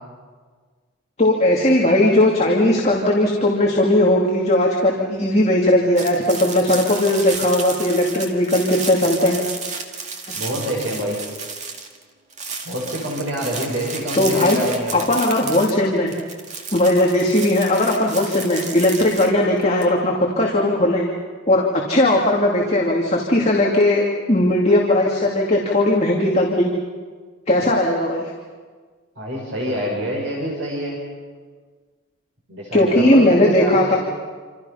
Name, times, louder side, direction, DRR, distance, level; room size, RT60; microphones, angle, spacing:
voice 1, 1.2-9.4 14.1-14.6 14.9-16.1 16.7-21.0 21.5-26.7 27.5-28.3 32.7-34.0, left 1 dB, 30° left, -2 dB, 2.6 m, -18 dB
sound 1, 6.0-12.0 12.3-19.9, right 4 dB, 35° right, 2.1 m, -32 dB
voice 2, 10.3-11.2 12.6-15.0 29.2-31.0 32.5-34.0, equal, 60° right, -2 dB, 6.1 m, -26 dB
28.0 x 27.5 x 5.7 m, 1.5 s
head